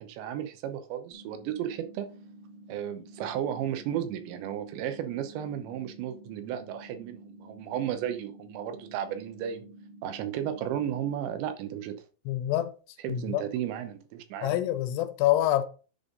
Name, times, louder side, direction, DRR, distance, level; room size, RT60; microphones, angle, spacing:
voice 1, 0.0-2.1 2.7-9.7 10.0-12.0 13.0-14.6, right 10 dB, 85° right, 3.2 m, -34 dB
sound 1, 1.1-11.1, right 1 dB, 60° left, 1.5 m, -50 dB
voice 2, 12.3-12.7 13.1-13.4 14.4-15.6, left 13 dB, 80° left, 2.7 m, -26 dB
9.9 x 3.8 x 5.4 m
omnidirectional pair, 5.0 m